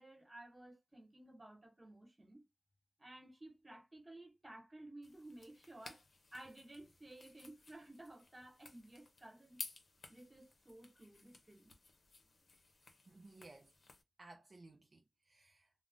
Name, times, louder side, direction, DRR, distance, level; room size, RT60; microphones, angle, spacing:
voice 1, 0.0-2.5 3.0-6.0 6.3-9.6 10.1-11.8, right 1 dB, 30° right, 1.1 m, -55 dB
sound 1, 5.0-14.0, left 3 dB, 85° left, 0.6 m, -56 dB
voice 2, 13.1-13.7 14.2-15.7, right 2 dB, 55° right, 0.4 m, -59 dB
2.4 x 2.1 x 3.5 m
wide cardioid pair, 90°, 0 cm